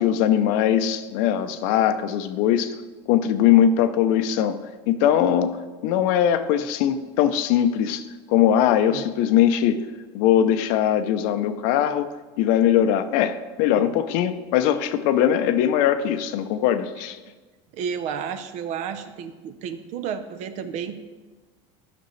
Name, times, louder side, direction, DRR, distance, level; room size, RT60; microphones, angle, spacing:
voice 1, 0.0-2.7 3.1-4.6 4.9-5.6 5.8-9.8 10.1-12.1 12.4-17.2, left 10 dB, 60° left, 10 dB, 0.5 m, -21 dB
voice 2, 17.7-21.0, right 7 dB, 55° right, 10 dB, 0.6 m, -32 dB
10.5 x 6.0 x 3.1 m, 1.3 s
supercardioid pair, 125°, 15 cm